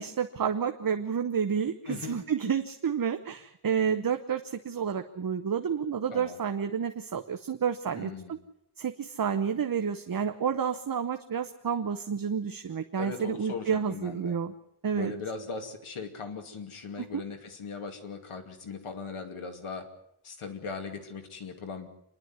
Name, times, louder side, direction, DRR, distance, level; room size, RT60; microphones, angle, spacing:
voice 1, 0.0-8.4 8.8-14.5 14.8-15.1 17.0-17.2, right 7 dB, 45° right, 8 dB, 0.9 m, -30 dB
voice 2, 1.9-2.2 6.1-6.4 8.0-8.3 13.0-14.4 14.9-19.9 20.2-21.9, left 5 dB, 85° left, 5 dB, 2.7 m, -39 dB
27.0 x 11.0 x 9.5 m, 0.79 s
wide cardioid pair, 160°, 49 cm